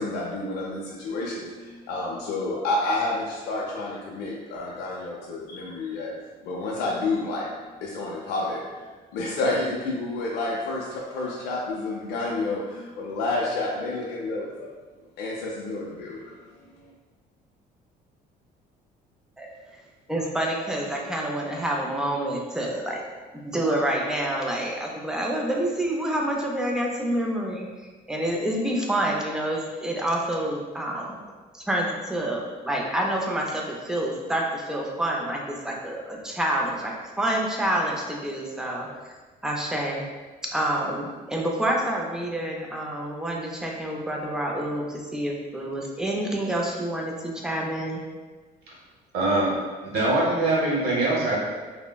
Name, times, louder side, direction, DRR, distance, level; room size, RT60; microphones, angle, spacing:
voice 1, 0.0-6.1 6.4-7.5 7.8-8.9 9.1-14.7 15.2-16.3 16.7-16.9, left 2 dB, 85° left, -4 dB, 0.4 m, -29 dB
voice 2, 20.1-23.0 23.4-31.2 31.5-39.2 39.4-40.0 40.5-48.0, right 1 dB, 5° right, -1 dB, 0.4 m, -28 dB
voice 3, 49.1-49.5 49.8-51.4, right 2 dB, 70° right, -5 dB, 0.8 m, -23 dB
3.3 x 2.0 x 2.2 m, 1.4 s
cardioid pair, 110°, 17 cm